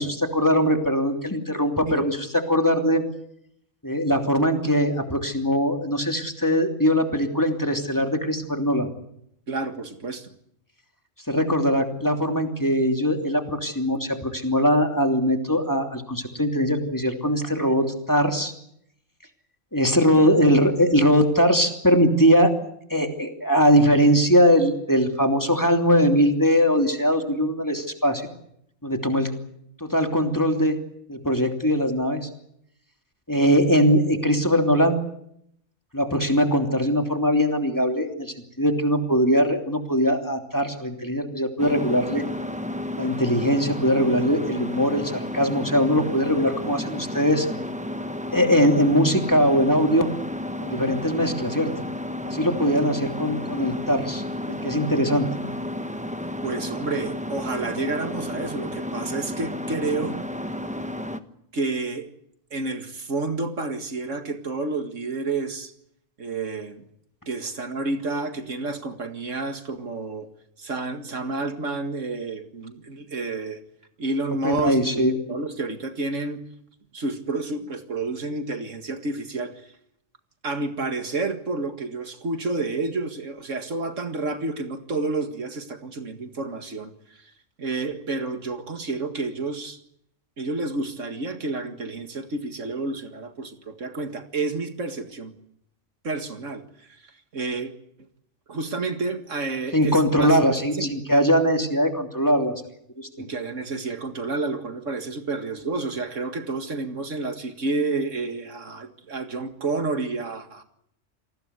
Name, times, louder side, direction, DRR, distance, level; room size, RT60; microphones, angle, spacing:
voice 1, 0.0-3.0 3.8-8.9 11.3-18.5 19.7-22.5 22.9-28.3 28.8-29.3 29.8-30.8 31.1-32.3 33.3-35.0 35.9-42.2 43.0-47.5 48.3-50.1 50.6-51.7 52.2-54.2 54.6-55.3 74.4-75.1 99.7-102.5 103.0-103.1, equal, 15° left, 4 dB, 2.9 m, -21 dB
voice 2, 9.5-10.3 20.1-20.5 56.4-60.2 61.5-62.1 62.5-65.7 66.2-66.9 67.3-70.3 70.6-73.6 74.0-76.4 76.9-79.7 80.4-87.3 87.6-89.8 90.4-95.3 96.0-97.0 97.3-97.7 98.5-100.4 100.7-101.0 103.2-110.6, right 3 dB, 75° right, 7 dB, 2.3 m, -30 dB
sound 1, 41.6-61.2, left 1 dB, 5° right, 1.1 m, -32 dB
28.5 x 19.5 x 8.2 m, 0.73 s
omnidirectional pair, 1.3 m